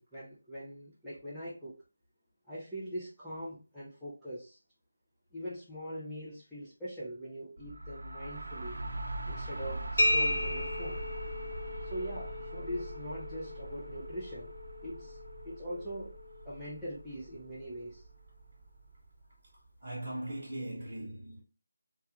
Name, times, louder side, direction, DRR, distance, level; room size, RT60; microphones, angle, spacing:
voice 1, 0.0-1.8 2.5-4.6 5.3-8.8 9.3-11.0 11.8-14.5 14.8-15.2 15.4-16.2 16.5-18.0, equal, ahead, 0.3 m, -42 dB
sound 1, 7.6-19.2, right 2 dB, 85° right, 0.4 m, -42 dB
sound 2, 10.0-17.5, left 1 dB, 60° left, 0.6 m, -36 dB
voice 2, 11.6-11.9 19.8-21.4, right 1 dB, 20° right, 1.0 m, -40 dB
2.3 x 2.2 x 2.7 m
figure-of-eight pair, 175°, 0 cm